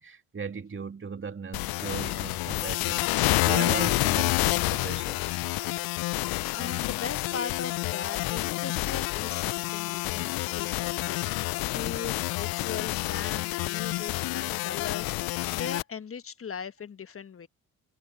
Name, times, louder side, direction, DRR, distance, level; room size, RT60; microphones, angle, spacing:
voice 1, 0.0-5.4, right 5 dB, 30° right, 2.9 m, -38 dB
sound 1, 1.5-15.8, left 21 dB, 65° left, 0.7 m, -28 dB
voice 2, 6.5-10.3 10.5-17.5, left 6 dB, 35° left, 1.5 m, -39 dB
hypercardioid pair, 55°, 40 cm